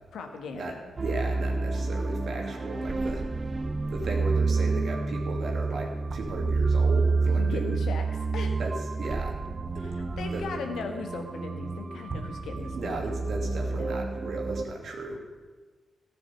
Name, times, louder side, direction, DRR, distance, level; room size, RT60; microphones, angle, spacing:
voice 1, 0.1-0.8 7.4-8.1 8.3-8.6 9.8-13.0 13.7-13.9, left 4 dB, 75° left, 4 dB, 1.6 m, -38 dB
sound 1, 1.0-14.6, right 4 dB, 45° right, 1.0 m, -29 dB
voice 2, 1.0-3.2 3.9-7.8 8.6-9.3 9.7-9.9 10.3-10.5 12.8-15.2, right 2 dB, 70° right, 1 dB, 2.7 m, -35 dB
13.5 x 6.8 x 9.0 m, 1.4 s
supercardioid pair, 40°, 0 cm